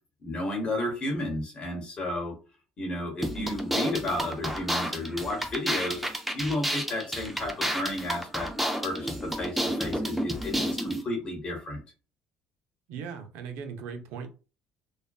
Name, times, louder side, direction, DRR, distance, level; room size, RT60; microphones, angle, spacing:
voice 1, 0.2-2.3 2.8-8.5 8.8-11.8, left 1 dB, 35° left, 2 dB, 1.0 m, -32 dB
sound 1, 3.2-11.0, equal, 5° right, 0.4 m, -31 dB
voice 2, 12.9-14.3, right 6 dB, 80° right, 6 dB, 0.5 m, -38 dB
2.4 x 2.2 x 2.3 m, 0.34 s
cardioid pair, 120°, 3 cm